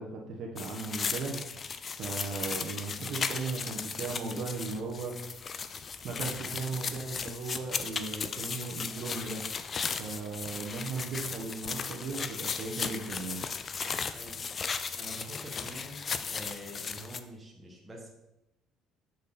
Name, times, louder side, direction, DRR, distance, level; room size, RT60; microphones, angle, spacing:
voice 1, 0.0-1.4 2.0-5.2 6.0-9.4 10.0-13.4, right 4 dB, 55° right, -1 dB, 1.2 m, -37 dB
sound 1, 0.6-17.2, left 5 dB, 30° left, 0.4 m, -36 dB
voice 2, 15.0-16.0 16.3-18.1, right 1 dB, 15° right, -1 dB, 1.7 m, -46 dB
6.8 x 6.4 x 4.2 m, 0.90 s
cardioid pair, 135°, 0 cm